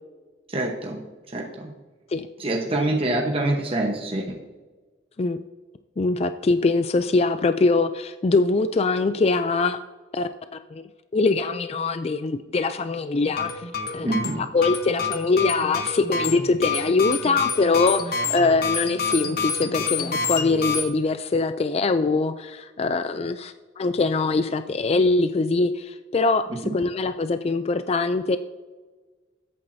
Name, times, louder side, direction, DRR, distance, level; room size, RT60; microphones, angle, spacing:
voice 1, 0.5-1.0 1.3-1.7 2.4-4.4 14.0-14.4 26.5-26.7, right 2 dB, 30° right, 0 dB, 1.0 m, -26 dB
voice 2, 6.0-9.8 10.1-10.8 11.1-13.5 13.9-14.1 14.5-26.5 26.7-28.4, left 3 dB, 35° left, 10 dB, 0.4 m, -23 dB
sound 1, 13.3-20.8, left 5 dB, 55° left, 1.1 m, -28 dB
20.0 x 8.6 x 2.7 m, 1.3 s
head